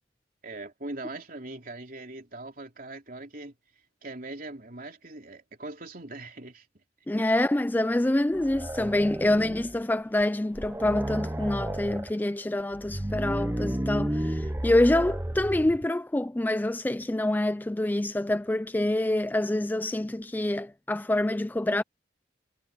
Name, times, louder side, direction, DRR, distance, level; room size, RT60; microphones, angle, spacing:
voice 1, 0.4-3.5 4.0-6.6 7.1-7.2, right 2 dB, 50° right, 3.4 m, -41 dB
voice 2, 7.1-21.8, left 1 dB, 10° left, 0.3 m, -26 dB
sound 1, 8.3-9.9 10.2-10.3 10.5-12.1 12.7-15.9, right 1 dB, 15° right, 0.8 m, -32 dB
head